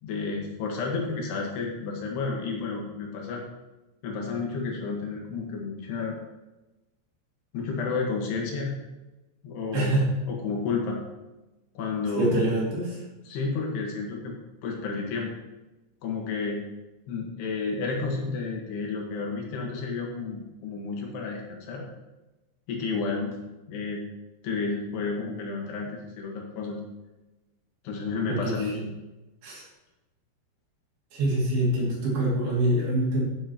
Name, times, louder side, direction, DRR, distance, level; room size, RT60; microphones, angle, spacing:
voice 1, 0.0-3.4 4.0-6.2 7.5-8.7 9.4-10.0 10.3-11.0 11.8-12.4 13.3-14.4 14.6-15.3 16.0-16.6 17.1-21.9 22.7-23.4 23.7-24.0 24.4-26.8 27.9-28.9, left 4 dB, 70° left, -1 dB, 3.5 m, -31 dB
voice 2, 9.7-10.1 12.1-13.0 28.2-28.8 29.4-29.6 31.1-33.2, right 1 dB, 65° right, -4 dB, 4.4 m, -25 dB
14.0 x 7.6 x 3.0 m, 1.0 s
omnidirectional pair, 5.1 m